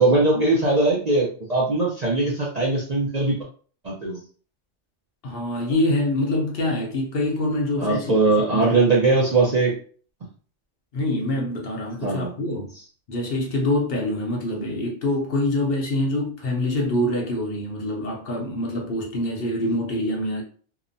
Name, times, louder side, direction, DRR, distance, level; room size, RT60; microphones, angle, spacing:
voice 1, 0.0-3.4 3.8-4.2 7.8-9.8 12.0-12.3, right 3 dB, 50° right, 0.5 m, -20 dB
voice 2, 5.2-8.2 8.5-9.2 10.9-12.7 13.1-20.4, left 1 dB, 60° left, 0.8 m, -25 dB
2.8 x 2.1 x 2.5 m
omnidirectional pair, 1.2 m